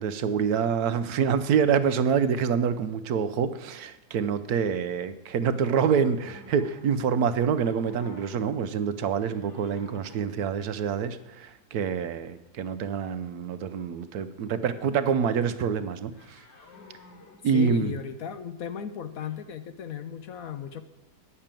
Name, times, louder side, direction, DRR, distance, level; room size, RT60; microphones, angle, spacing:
voice 1, 0.0-16.5 17.4-17.9, right 7 dB, 70° right, 11 dB, 1.1 m, -26 dB
sound 1, 5.6-7.3 7.5-8.8 9.1-10.5 16.1-18.1 19.1-19.4, left 3 dB, 85° left, 2.0 m, -52 dB
voice 2, 17.5-20.8, left 8 dB, 65° left, 10 dB, 1.1 m, -35 dB
9.9 x 6.7 x 8.8 m, 1.0 s
omnidirectional pair, 1.7 m